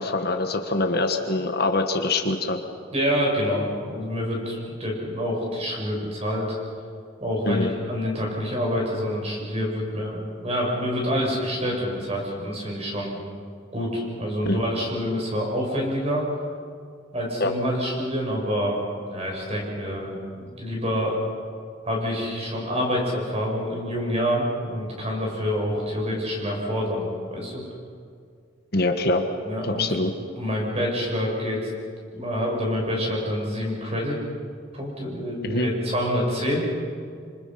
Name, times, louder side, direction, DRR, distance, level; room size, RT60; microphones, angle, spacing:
voice 1, 0.0-2.6 7.5-7.7 14.5-14.6 17.4-17.5 28.7-29.3 29.6-30.1 35.4-35.7, left 2 dB, 55° left, 5 dB, 1.6 m, -24 dB
voice 2, 2.9-6.6 7.2-13.2 13.7-16.2 17.1-18.8 19.1-21.2 21.8-27.6 29.4-29.9 30.4-31.7 32.1-34.2 34.7-36.7, equal, 30° right, -1 dB, 7.0 m, -27 dB
28.0 x 26.0 x 5.8 m, 2.2 s
head